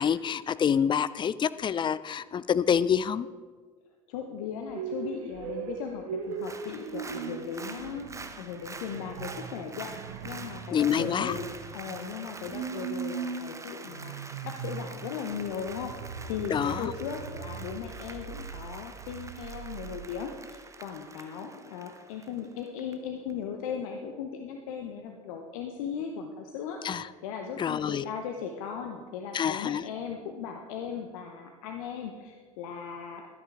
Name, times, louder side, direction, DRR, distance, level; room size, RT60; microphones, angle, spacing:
voice 1, 0.0-3.3 10.7-11.4 16.5-16.9 26.8-27.1 27.6-28.1 29.3-29.8, left 8 dB, 25° left, 17 dB, 0.4 m, -27 dB
voice 2, 4.1-8.1 8.4-14.1 14.4-15.9 16.2-26.8 27.2-33.3, left 7 dB, 70° left, 4 dB, 0.9 m, -37 dB
sound 1, 4.7-20.1, right 7 dB, 70° right, 0.9 m, -40 dB
Applause, 6.3-22.9 23.3-23.4, right 3 dB, 15° right, 0.9 m, -46 dB
12.0 x 10.5 x 3.5 m, 1.5 s
hypercardioid pair, 65°, 18 cm